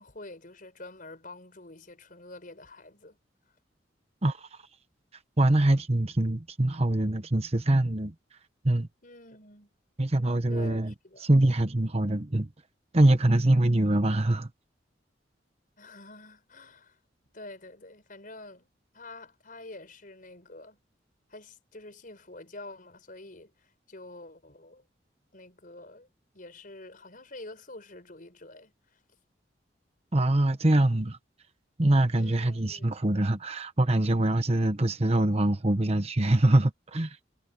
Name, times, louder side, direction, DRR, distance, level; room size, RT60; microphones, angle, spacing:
voice 1, 0.0-3.2 9.0-9.7 10.5-11.3 15.8-17.0 17.3-18.7 18.9-20.8 21.3-24.9 25.3-26.1 26.3-29.0 32.1-33.0, left 2 dB, 50° left, 6.1 m, -47 dB
voice 2, 5.4-8.1 8.6-8.9 10.0-10.9 11.2-12.5 12.9-14.5 30.1-31.2 31.8-37.2, right 1 dB, 35° right, 1.1 m, -24 dB
head